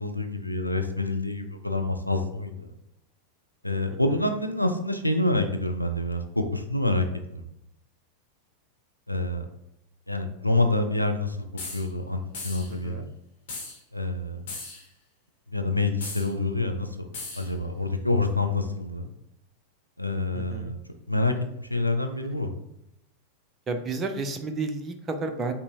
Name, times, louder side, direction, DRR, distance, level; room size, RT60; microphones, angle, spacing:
voice 1, 0.0-2.7 3.6-7.4 9.1-9.5 10.1-11.4 11.7-13.1 13.9-14.4 15.5-17.1 17.4-19.1 20.0-20.8 21.1-21.3 21.7-22.5, left 2 dB, 90° left, 6 dB, 0.4 m, -27 dB
Pneumatic grease bomb, 11.6-11.9 12.3-12.7 13.5-13.8 14.5-14.8 16.0-16.3 17.1-17.5, left 3 dB, 55° left, 1.5 m, -37 dB
voice 2, 12.7-13.1 20.3-20.7 23.7-25.5, right 3 dB, 25° right, 6 dB, 0.5 m, -31 dB
5.4 x 2.6 x 2.8 m, 0.82 s
figure-of-eight pair, 90°, 0 cm